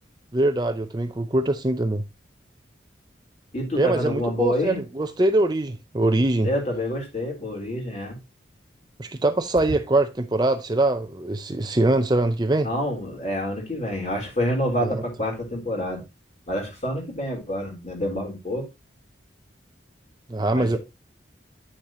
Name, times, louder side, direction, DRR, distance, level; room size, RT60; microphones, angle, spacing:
voice 1, 0.3-2.0 3.7-6.5 9.0-12.7 14.8-15.0 20.3-20.8, right 2 dB, 20° right, 0.5 m, -23 dB
voice 2, 3.5-4.8 6.4-8.2 12.6-16.0 16.5-18.7 20.5-20.8, left 1 dB, 35° left, 3.6 m, -27 dB
9.6 x 7.0 x 3.0 m
head